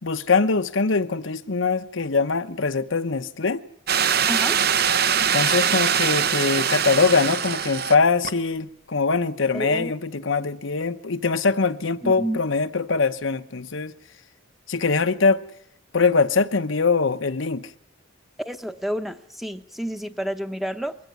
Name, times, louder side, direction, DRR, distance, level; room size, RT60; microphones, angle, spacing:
voice 1, 0.0-3.6 5.2-13.9 14.7-15.4 15.9-17.7, left 4 dB, 75° left, 1.0 m, -22 dB
sound 1, 3.9-7.9 8.2-8.3, right 8 dB, 50° right, 0.9 m, -22 dB
voice 2, 4.3-4.6 9.5-9.9 12.0-12.4 18.4-21.0, equal, ahead, 0.9 m, -29 dB
22.0 x 16.5 x 9.5 m
head